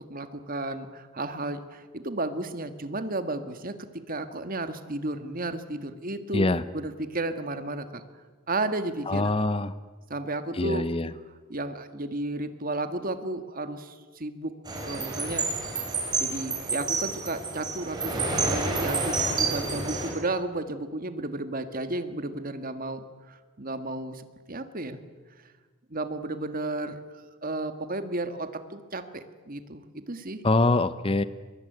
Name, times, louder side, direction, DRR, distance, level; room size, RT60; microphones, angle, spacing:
voice 1, 0.0-3.8 4.1-6.5 6.7-8.0 8.5-9.3 10.1-10.8 11.5-14.5 14.8-15.5 16.2-25.0 25.9-30.4, right 2 dB, 40° right, 9 dB, 1.7 m, -33 dB
voice 2, 6.3-6.6 9.1-9.7 10.5-11.1 30.4-31.2, left 2 dB, 25° left, 14 dB, 0.7 m, -24 dB
sound 1, 14.7-20.1, right 3 dB, 20° right, 5.4 m, -29 dB
24.0 x 22.0 x 9.3 m, 1.4 s
head